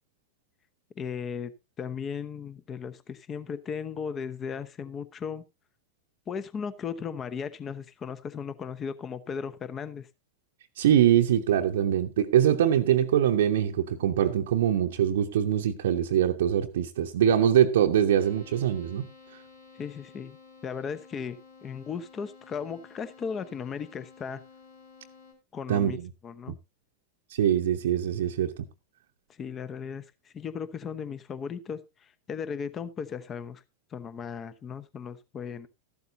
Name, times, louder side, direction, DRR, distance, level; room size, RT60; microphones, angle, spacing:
voice 1, 1.0-1.5 1.8-5.4 6.3-10.1 19.7-20.4 20.6-24.4 25.5-26.0 26.2-26.6 29.4-30.0 30.3-33.6 33.9-35.7, left 6 dB, 25° left, 0.9 m, -36 dB
voice 2, 10.8-19.0 25.7-26.1 27.3-28.5, right 10 dB, 60° right, 0.8 m, -23 dB
sound 1, 18.1-25.3, left 4 dB, 75° left, 5.5 m, -53 dB
14.0 x 12.0 x 2.7 m
figure-of-eight pair, 90°, 0 cm